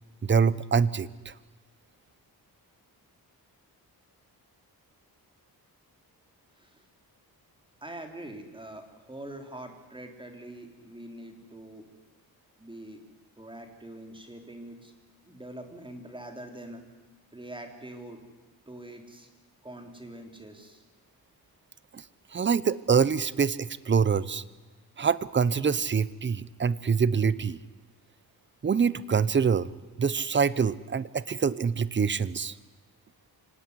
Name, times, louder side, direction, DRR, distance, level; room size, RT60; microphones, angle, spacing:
voice 1, 0.2-1.3 21.9-22.0 22.3-24.4 25.0-27.6 28.6-29.7 30.0-32.5, right 6 dB, 30° right, 19 dB, 0.8 m, -25 dB
voice 2, 7.8-11.9 12.6-13.0 13.4-14.9 15.3-16.8 17.3-18.2 18.7-19.3 19.6-20.8, right 1 dB, 15° right, 5 dB, 3.5 m, -44 dB
25.0 x 18.0 x 9.7 m, 1.2 s
wide cardioid pair, 130°, 38 cm